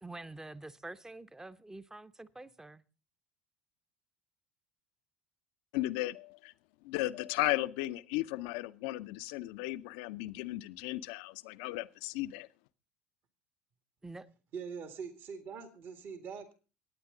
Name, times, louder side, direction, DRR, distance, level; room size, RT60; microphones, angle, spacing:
voice 1, 0.0-2.8 14.0-14.3, right 2 dB, 10° right, 0.9 m, -47 dB
voice 2, 5.7-6.5 6.8-12.5, left 18 dB, 60° left, 0.6 m, -35 dB
voice 3, 14.5-16.5, right 6 dB, 45° right, 2.0 m, -43 dB
24.0 x 9.5 x 3.8 m
figure-of-eight pair, 65°, 5 cm